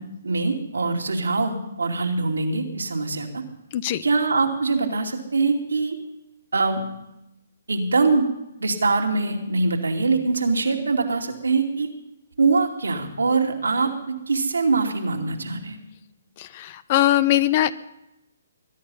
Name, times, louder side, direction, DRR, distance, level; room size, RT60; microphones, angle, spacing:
voice 1, 0.0-3.4 4.0-6.0 6.5-6.8 7.7-8.3 8.6-11.9 12.4-15.8, right 3 dB, 80° right, 2 dB, 2.7 m, -23 dB
voice 2, 16.4-17.7, left 13 dB, 40° left, 17 dB, 0.8 m, -21 dB
22.0 x 11.0 x 5.6 m, 0.89 s
figure-of-eight pair, 135°, 0 cm